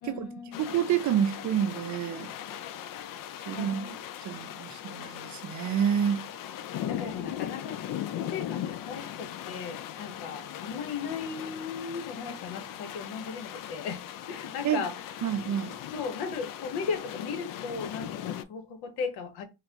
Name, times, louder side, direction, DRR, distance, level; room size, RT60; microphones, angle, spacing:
voice 1, 0.0-0.7 2.9-3.1 3.5-4.0 4.3-4.5 6.7-15.1 15.9-19.4, left 5 dB, 75° left, 0.9 m, -37 dB
sound 1, 0.5-18.4, left 11 dB, 55° left, 0.5 m, -39 dB
voice 2, 0.6-2.3 3.5-3.9 4.2-6.3 14.6-14.8 15.2-15.8, right 9 dB, 45° right, 0.5 m, -28 dB
3.9 x 2.1 x 2.8 m
supercardioid pair, 65°, 39 cm